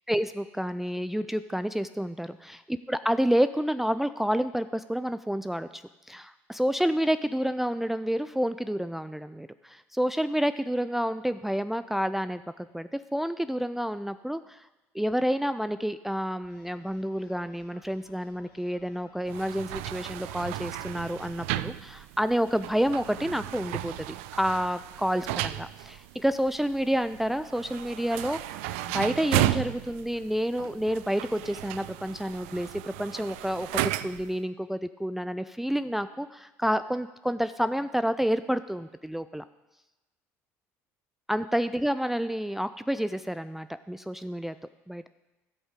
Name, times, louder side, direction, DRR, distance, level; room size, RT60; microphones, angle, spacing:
voice 1, 0.1-5.8 6.1-14.7 14.9-24.1 24.4-39.4 41.3-44.6 44.9-45.0, equal, 5° right, 11 dB, 0.4 m, -29 dB
sound 1, 16.4-21.6, left 4 dB, 80° left, 3.6 m, -60 dB
sound 2, 19.3-34.3, right 14 dB, 85° right, 0.3 m, -34 dB
15.5 x 5.2 x 5.1 m, 1.0 s
hypercardioid pair, 70°, 7 cm